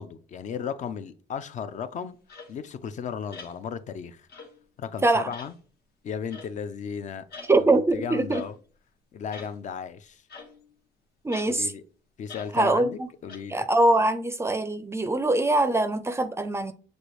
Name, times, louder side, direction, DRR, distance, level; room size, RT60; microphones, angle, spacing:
voice 1, 0.0-2.2 2.5-4.2 4.8-5.5 6.0-7.2 7.6-8.5 9.1-10.2 11.5-11.8 12.2-13.6, left 7 dB, 45° left, 0.5 m, -35 dB
sound 1, 2.3-2.5 3.3-3.6 4.3-4.6 5.3-5.5 6.3-6.6 7.3-7.5 8.3-8.5 9.3-9.6 10.3-10.7 11.3-11.5 12.3-12.5 13.3-13.4, left 4 dB, 70° left, 1.4 m, -44 dB
voice 2, 7.5-8.4 11.2-11.7 12.5-12.9 13.5-16.7, right 2 dB, 15° right, 0.4 m, -23 dB
6.5 x 2.6 x 3.1 m
cardioid pair, 110°, 17 cm